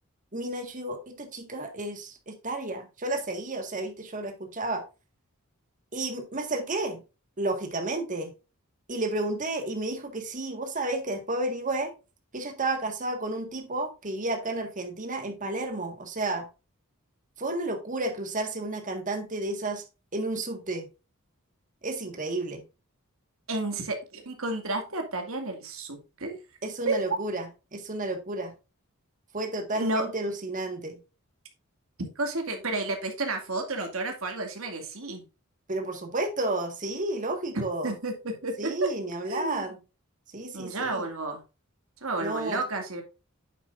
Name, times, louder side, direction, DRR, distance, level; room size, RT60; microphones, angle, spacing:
voice 1, 0.3-4.8 5.9-7.0 7.4-8.3 8.9-11.9 12.3-16.5 17.4-19.8 20.1-20.9 21.8-22.6 26.6-27.5 27.7-28.5 29.3-31.0 35.7-37.9 38.6-39.8 40.3-41.0 42.2-42.6, right 2 dB, 35° right, 5 dB, 1.7 m, -31 dB
voice 2, 23.5-26.4 26.8-27.2 29.7-30.1 32.0-35.3 37.8-38.7 39.3-39.7 40.5-41.4 42.0-43.0, right 2 dB, 70° right, 4 dB, 2.3 m, -31 dB
9.2 x 7.4 x 2.5 m, 0.29 s
head